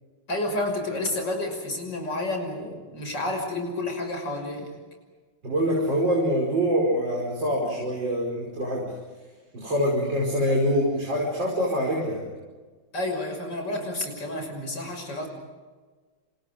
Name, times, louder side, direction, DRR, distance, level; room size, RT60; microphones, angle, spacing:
voice 1, 0.3-4.7 12.9-15.3, left 2 dB, 70° left, 4 dB, 6.8 m, -30 dB
voice 2, 5.4-8.9 9.5-12.2, equal, 70° right, -2 dB, 6.0 m, -25 dB
29.5 x 29.0 x 5.2 m, 1.4 s
omnidirectional pair, 2.0 m